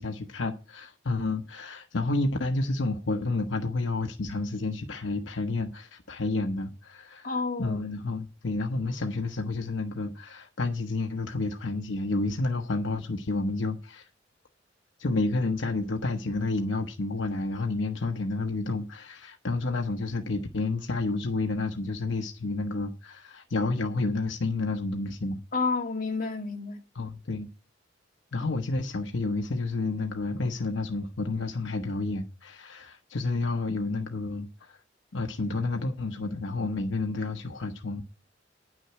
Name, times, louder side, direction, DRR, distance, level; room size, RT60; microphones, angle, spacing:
voice 1, 0.0-14.1 15.0-25.4 26.9-27.5 28.3-34.8 35.1-38.0, left 3 dB, 75° left, 1.0 m, -30 dB
voice 2, 7.2-7.8 25.5-26.8, left 4 dB, 50° left, 2.0 m, -29 dB
9.8 x 6.3 x 7.5 m
head